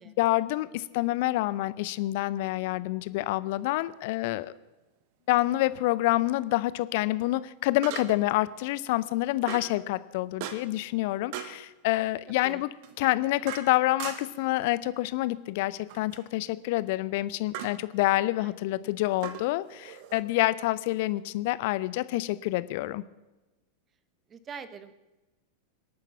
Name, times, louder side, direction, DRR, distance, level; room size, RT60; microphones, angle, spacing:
voice 1, 0.2-4.5 5.3-12.7 13.0-23.0, left 17 dB, 50° left, 16 dB, 0.7 m, -27 dB
sound 1, 4.1-4.3 7.8-8.4 9.5-9.8 10.4-10.8 11.3-11.6 12.8-14.5 15.9-16.3 17.5-17.8 19.2-20.2, right 9 dB, 45° right, 1.3 m, -39 dB
voice 2, 18.4-18.9 24.3-24.9, right 6 dB, 25° right, 13 dB, 1.1 m, -44 dB
25.0 x 8.8 x 5.8 m, 1.1 s
figure-of-eight pair, 90°, 0 cm